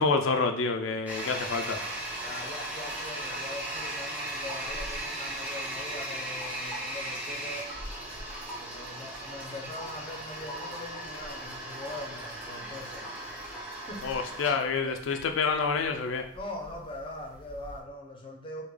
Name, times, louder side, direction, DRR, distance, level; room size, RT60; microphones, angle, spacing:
voice 1, 0.0-1.8 14.0-16.3, left 4 dB, 85° left, 5 dB, 0.4 m, -28 dB
Toilet flush, 1.1-17.8, right 1 dB, 10° right, 0.8 m, -37 dB
voice 2, 2.2-7.7 8.6-13.2 13.7-14.1 14.8-15.0 16.3-18.6, left 2 dB, 25° left, 1 dB, 0.5 m, -42 dB
3.2 x 2.1 x 3.6 m, 0.72 s
head